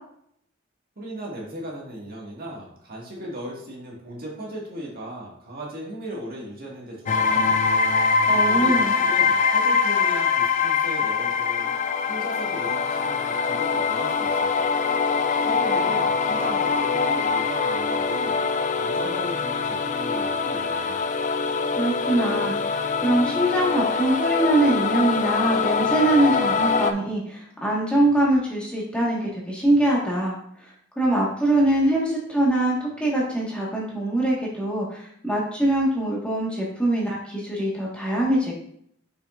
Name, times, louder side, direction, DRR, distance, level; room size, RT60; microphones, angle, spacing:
voice 1, 1.0-7.6 8.2-11.7 12.1-14.7 15.4-18.4 18.7-21.0, right 1 dB, 50° right, -3 dB, 1.9 m, -37 dB
sound 1, 7.1-26.9, left 5 dB, 40° left, 0.4 m, -23 dB
voice 2, 8.3-8.9 21.8-30.4 30.9-38.6, right 1 dB, 5° left, -5 dB, 1.6 m, -23 dB
6.7 x 6.3 x 2.6 m, 0.68 s
head